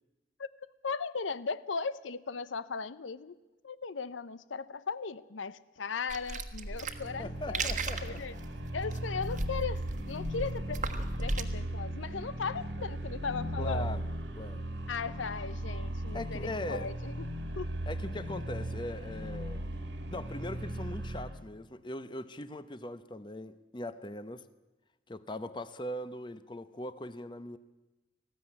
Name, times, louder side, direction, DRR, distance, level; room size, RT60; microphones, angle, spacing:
voice 1, 0.8-3.4 3.6-7.7 8.0-8.3 8.7-13.9 14.9-17.3 17.6-17.7, left 5 dB, 85° left, 16 dB, 0.7 m, -37 dB
sound 1, 6.1-11.4, right 3 dB, 40° right, 1.4 m, -37 dB
sound 2, 6.7-21.4, right 1 dB, 70° right, 2.0 m, -37 dB
voice 2, 7.2-8.2 13.6-14.1 14.4-14.6 16.1-16.9 17.9-19.6 20.1-24.4 25.1-27.6, left 1 dB, 25° left, 13 dB, 0.8 m, -40 dB
19.5 x 15.0 x 9.8 m, 1.1 s
head